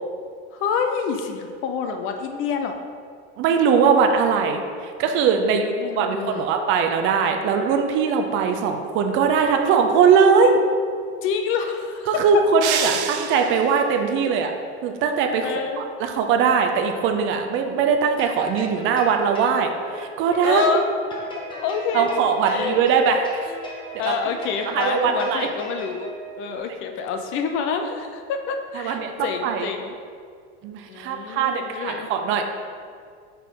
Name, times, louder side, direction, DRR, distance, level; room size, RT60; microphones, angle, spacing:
voice 1, 0.5-2.8 5.4-6.5 11.2-12.2 12.7-13.0 14.2-14.3 15.4-15.9 20.4-20.9 21.3-22.8 24.0-29.9 30.9-32.1, left 6 dB, 40° left, 5 dB, 0.6 m, -27 dB
voice 2, 3.4-10.6 12.1-14.5 14.8-15.5 15.8-20.6 21.9-23.5 24.0-24.1 24.7-25.5 28.8-29.7 30.6-32.4, right 6 dB, 35° right, 5 dB, 0.6 m, -20 dB
sound 1, 12.6-13.9, right 8 dB, 85° right, 0.8 m, -27 dB
sound 2, 18.1-26.6, equal, 15° left, 1.0 m, -38 dB
8.1 x 6.0 x 3.7 m, 2.1 s
supercardioid pair, 155°, 33 cm